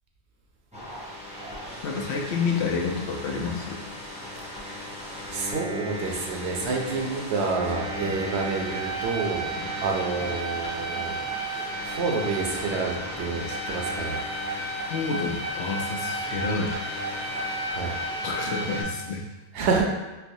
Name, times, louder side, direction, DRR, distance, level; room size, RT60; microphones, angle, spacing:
sound 1, 0.7-18.8, right 1 dB, 5° right, 0.6 m, -33 dB
voice 1, 1.8-3.9 8.0-8.2 9.6-9.7 14.9-16.8 18.2-19.2, left 4 dB, 80° left, 0 dB, 0.9 m, -29 dB
voice 2, 5.3-9.5 9.8-14.2 17.7-17.9 19.5-19.8, right 4 dB, 85° right, 0 dB, 0.9 m, -29 dB
4.4 x 2.0 x 2.6 m, 1.2 s
omnidirectional pair, 1.1 m